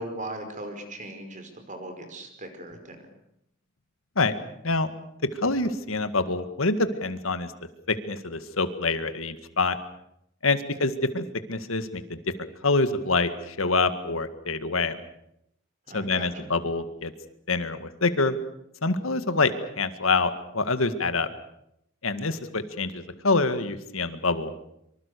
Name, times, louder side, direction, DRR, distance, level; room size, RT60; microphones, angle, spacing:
voice 1, 0.0-3.0 10.7-10.8 15.9-16.5, right 1 dB, 40° right, 7 dB, 5.0 m, -38 dB
voice 2, 5.4-7.5 7.9-9.8 10.4-11.2 11.5-12.2 12.6-15.0 15.9-17.1 17.5-18.4 18.8-21.3 22.0-24.5, left 3 dB, 90° left, 10 dB, 2.0 m, -26 dB
25.0 x 24.5 x 6.8 m, 0.77 s
head